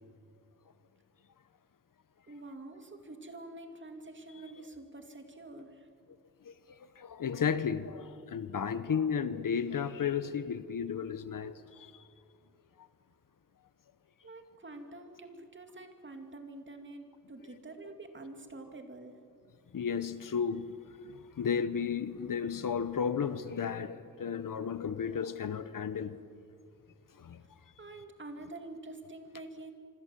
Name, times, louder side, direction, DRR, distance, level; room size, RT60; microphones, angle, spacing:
voice 1, 2.3-5.9 14.2-19.2 27.8-29.7, right 2 dB, 30° right, 2.4 m, -47 dB
voice 2, 6.4-12.0 19.7-20.8 21.0-26.2 27.2-27.4, left 7 dB, 65° left, 1.1 m, -33 dB
26.0 x 25.5 x 7.6 m
wide cardioid pair, 125°, 36 cm